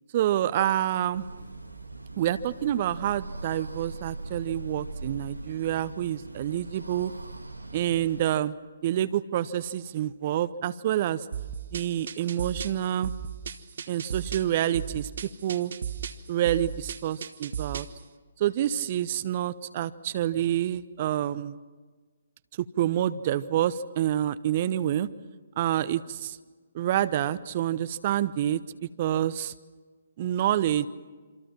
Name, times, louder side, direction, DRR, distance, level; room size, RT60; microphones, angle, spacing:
voice 1, 0.1-1.2 2.2-7.1 7.7-8.5 8.8-11.2 11.7-13.1 13.9-15.1 15.4-15.7 16.3-17.9 18.4-21.6 22.8-25.1 25.6-26.4 26.7-28.6 29.0-29.5 30.2-30.9, right 11 dB, 35° right, 14 dB, 0.8 m, -27 dB
sound 1, 1.1-8.3, right 2 dB, 85° right, 1.6 m, -41 dB
sound 2, 11.3-18.0, right 8 dB, 55° right, 1.3 m, -36 dB
27.5 x 26.0 x 6.1 m, 1.4 s
figure-of-eight pair, 135°, 0 cm